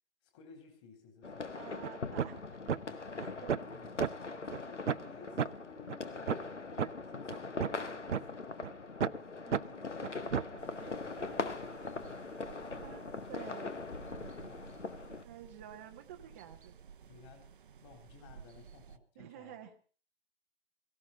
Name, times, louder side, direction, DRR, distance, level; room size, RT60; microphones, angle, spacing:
voice 1, 0.2-1.8 3.0-6.7 7.1-8.5 9.2-11.8 14.2-14.7 17.0-17.5 17.8-19.5, left 5 dB, 25° left, 4 dB, 4.0 m, -58 dB
sound 1, 1.2-15.2, left 3 dB, 85° left, 1.7 m, -41 dB
voice 2, 1.6-2.4 3.2-4.0 9.4-10.5 10.8-11.0 12.4-13.0 13.3-13.7 14.0-14.5 15.2-16.7 19.2-19.8, right 10 dB, 15° right, 4 dB, 0.7 m, -51 dB
sound 2, 1.8-1.9 2.2-2.4 2.7-2.8 3.2-3.7 4.0-4.1 4.5-4.6 4.9-5.1 5.4-5.5 5.9-6.0 6.3-6.4 6.8-6.9 7.3-8.2 8.6-8.7 9.0-9.2 9.5-9.6 10.0-10.6, right 7 dB, 90° right, 0.6 m, -32 dB
sound 3, 10.6-19.0, right 7 dB, 50° right, 0.8 m, -55 dB
17.5 x 16.0 x 4.1 m, 0.41 s
figure-of-eight pair, 150°, 35 cm